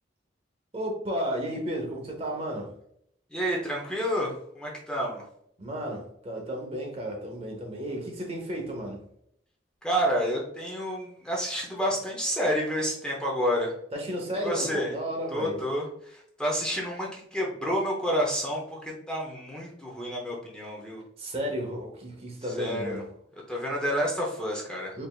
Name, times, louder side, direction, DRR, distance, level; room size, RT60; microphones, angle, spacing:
voice 1, 0.7-2.7 5.6-9.0 13.9-15.6 21.2-23.1 25.0-25.1, equal, 30° right, 0.8 m, -33 dB
voice 2, 3.3-5.2 9.8-13.7 14.4-14.9 15.3-21.0 22.6-23.0 23.5-24.9, equal, 5° left, 0.7 m, -29 dB
4.1 x 3.4 x 2.3 m
head